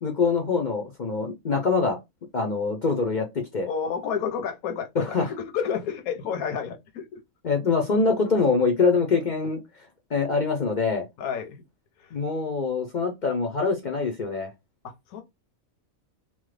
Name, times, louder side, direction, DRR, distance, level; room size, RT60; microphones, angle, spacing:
voice 1, 0.0-2.0 2.3-3.7 5.0-5.3 7.4-9.6 10.1-11.1 12.1-14.5, left 4 dB, 55° left, 0.5 m, -24 dB
voice 2, 3.6-7.2 11.2-11.6 12.0-12.2 14.8-15.2, left 7 dB, 85° left, 1.2 m, -30 dB
3.0 x 2.0 x 3.2 m
omnidirectional pair, 1.4 m